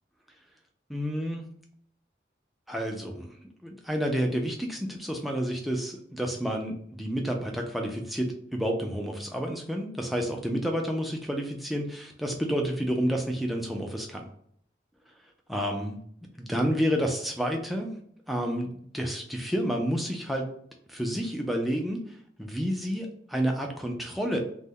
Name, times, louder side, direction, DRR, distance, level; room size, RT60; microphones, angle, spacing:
voice 1, 0.9-1.5 2.7-3.3 3.6-14.3 15.5-16.0 16.4-18.0 18.3-20.5 20.9-24.4, equal, ahead, 1 dB, 0.3 m, -30 dB
2.1 x 2.1 x 3.5 m, 0.66 s
head